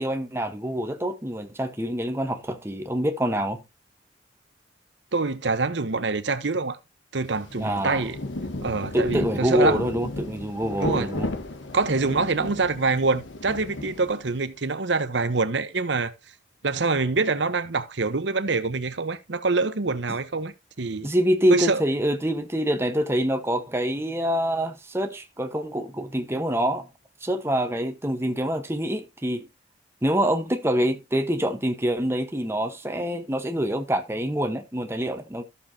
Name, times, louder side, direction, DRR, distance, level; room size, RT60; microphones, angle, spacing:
voice 1, 0.0-3.6 7.5-8.0 8.9-11.3 21.0-26.9 27.2-29.5 30.0-35.4, equal, 15° right, 1.1 m, -26 dB
voice 2, 5.1-6.8 7.1-8.2 8.6-9.8 10.8-11.1 11.7-16.1 16.6-21.1 21.5-21.8, right 3 dB, 70° right, 0.9 m, -25 dB
Rain, 7.3-14.5, left 2 dB, 85° left, 1.3 m, -34 dB
13.5 x 6.9 x 2.8 m
head